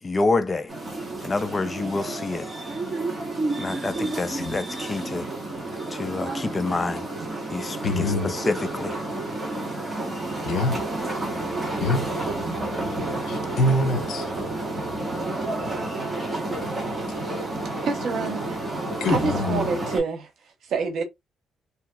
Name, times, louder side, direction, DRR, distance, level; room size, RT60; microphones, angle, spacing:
voice 1, 0.0-0.7 1.2-2.5 3.6-5.3 5.9-7.1 7.5-9.0, left 3 dB, 25° left, 0.5 m, -27 dB
sound 1, 0.7-20.0, right 2 dB, 25° right, 1.5 m, -30 dB
voice 2, 7.8-8.3 10.4-10.8 11.8-12.0 13.3-14.3 19.0-19.7, left 2 dB, 75° left, 0.8 m, -24 dB
voice 3, 17.8-18.6 19.1-20.3 20.7-21.0, right 4 dB, 70° right, 0.9 m, -27 dB
2.8 x 2.8 x 2.3 m
cardioid pair, 90°, 0 cm